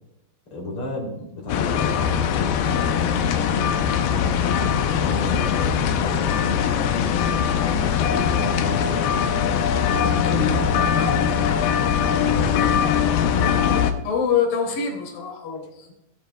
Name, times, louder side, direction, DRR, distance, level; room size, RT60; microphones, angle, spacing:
voice 1, 0.5-7.0 7.6-9.5 10.0-11.6 12.0-13.7, left 1 dB, 35° left, -1 dB, 3.3 m, -33 dB
sound 1, 1.5-13.9, left 8 dB, 80° left, 2.2 m, -21 dB
voice 2, 14.0-15.9, left 6 dB, 50° left, -1 dB, 3.9 m, -24 dB
18.5 x 8.7 x 2.3 m, 0.90 s
omnidirectional pair, 5.3 m